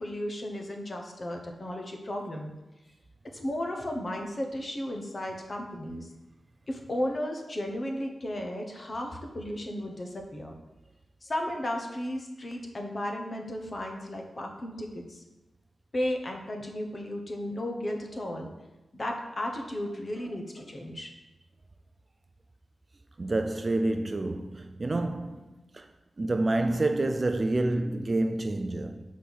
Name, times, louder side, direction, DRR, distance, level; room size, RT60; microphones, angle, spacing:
voice 1, 0.0-2.5 3.3-6.1 6.7-10.5 11.2-15.2 15.9-18.5 18.9-21.1, left 1 dB, 30° left, 0.9 m, -34 dB
voice 2, 23.2-25.9 26.2-29.0, right 2 dB, 30° right, 0.3 m, -28 dB
5.4 x 4.2 x 6.2 m
wide cardioid pair, 150°, 0 cm